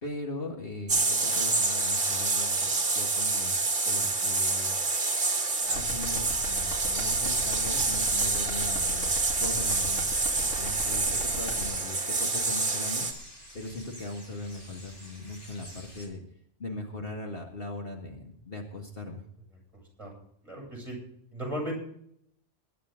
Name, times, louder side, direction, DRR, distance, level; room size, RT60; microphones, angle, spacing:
voice 1, 0.0-3.6 3.8-4.8 5.6-13.1 13.5-16.2 16.6-19.2, left 2 dB, 50° left, 0 dB, 2.1 m, -39 dB
sound 1, 0.9-13.1, right 3 dB, 50° right, 1.7 m, -27 dB
sound 2, 5.7-11.6, equal, 80° left, 3.4 m, -38 dB
sound 3, 7.5-16.1, equal, 30° left, 3.5 m, -49 dB
voice 2, 20.4-21.0 21.3-21.7, equal, 25° right, -1 dB, 7.2 m, -36 dB
21.0 x 10.0 x 3.8 m, 0.69 s
omnidirectional pair, 1.2 m